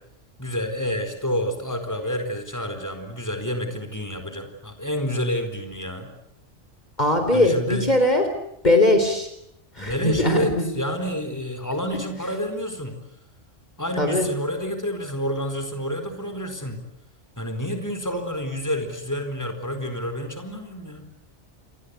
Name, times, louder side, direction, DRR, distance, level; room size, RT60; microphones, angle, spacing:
voice 1, 0.4-6.1 7.3-7.9 9.8-13.0 13.8-16.8 17.4-21.1, equal, 15° left, 7 dB, 4.5 m, -29 dB
voice 2, 7.0-8.3 8.6-9.3 9.8-10.7 14.0-14.3, left 1 dB, 35° left, 6 dB, 4.1 m, -20 dB
29.5 x 24.0 x 8.2 m, 0.78 s
omnidirectional pair, 1.2 m